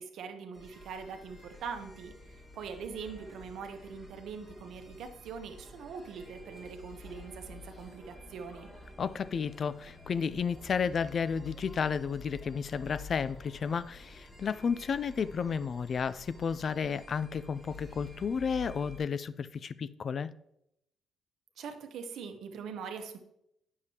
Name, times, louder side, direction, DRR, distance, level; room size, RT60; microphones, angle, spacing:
voice 1, 0.0-8.7 21.6-23.2, right 6 dB, 75° right, 0.8 m, -42 dB
sound 1, 0.5-19.0, left 3 dB, 15° left, 1.5 m, -50 dB
voice 2, 9.0-20.3, left 6 dB, 50° left, 0.3 m, -32 dB
8.8 x 6.5 x 2.8 m
cardioid pair, 90°, 0 cm